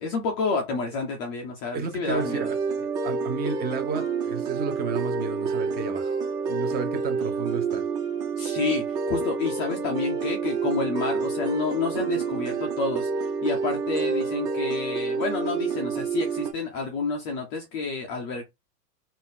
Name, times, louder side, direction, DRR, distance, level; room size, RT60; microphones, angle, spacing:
voice 1, 0.0-2.5 8.4-18.4, left 4 dB, 20° left, 0.4 m, -29 dB
voice 2, 1.7-2.6 3.0-6.2 6.5-7.8, right 5 dB, 20° right, 0.8 m, -32 dB
sound 1, 2.1-16.5, right 5 dB, 40° right, 2.0 m, -28 dB
4.1 x 2.6 x 3.8 m
hypercardioid pair, 135°, 49 cm